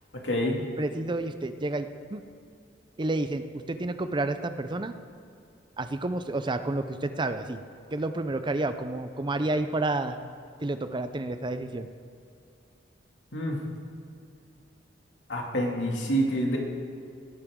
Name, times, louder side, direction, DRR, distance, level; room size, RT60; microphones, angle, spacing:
voice 1, 0.2-0.6 13.3-13.6 15.3-16.6, equal, 90° left, 0 dB, 2.4 m, -27 dB
voice 2, 0.8-2.2 3.0-4.9 5.8-7.6 7.9-10.2 10.6-11.9, right 2 dB, 25° right, 9 dB, 0.5 m, -30 dB
18.5 x 12.0 x 3.7 m, 2.4 s
head